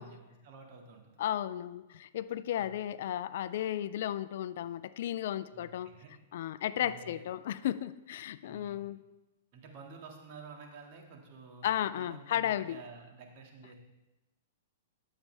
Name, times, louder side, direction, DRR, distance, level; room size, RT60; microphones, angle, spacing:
voice 1, 0.0-1.2 2.6-2.7 5.5-6.1 6.8-7.2 8.4-8.8 9.5-11.7 11.9-13.8, right 4 dB, 50° right, 1 dB, 2.0 m, -51 dB
voice 2, 1.2-5.9 6.3-9.0 11.6-12.8, left 11 dB, 65° left, 15 dB, 0.4 m, -34 dB
12.0 x 7.4 x 3.4 m, 1.0 s
hypercardioid pair, 135°, 0 cm